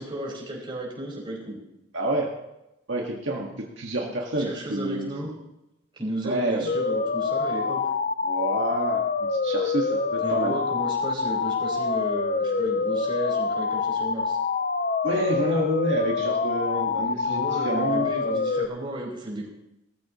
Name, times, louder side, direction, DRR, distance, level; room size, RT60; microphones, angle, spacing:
voice 1, 0.0-1.6 4.0-4.1 4.4-5.3 5.9-7.9 10.2-14.4 17.1-19.5, right 1 dB, 25° right, -3 dB, 5.1 m, -34 dB
voice 2, 1.9-2.3 2.9-3.5 3.8-5.1 6.2-6.7 8.2-10.5 15.0-18.1, right 1 dB, 70° right, -1 dB, 1.8 m, -28 dB
sound 1, 6.7-18.7, left 4 dB, 45° left, 0.6 m, -26 dB
18.5 x 14.0 x 3.1 m, 0.90 s
head